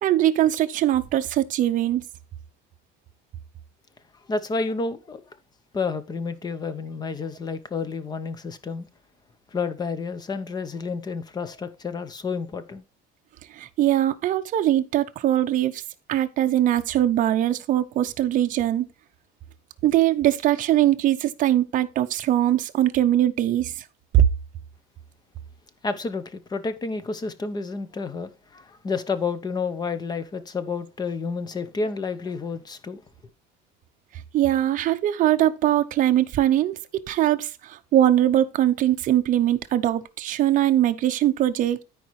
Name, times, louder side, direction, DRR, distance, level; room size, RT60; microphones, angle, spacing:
voice 1, 0.0-2.0 13.5-15.8 16.1-18.9 19.8-23.7 24.1-24.3 34.3-41.8, right 12 dB, 40° right, 0.6 m, -21 dB
voice 2, 4.3-5.2 5.7-8.9 9.5-12.8 25.8-33.0, left 4 dB, 20° left, 0.7 m, -30 dB
13.5 x 4.8 x 3.1 m
cardioid pair, 155°, 21 cm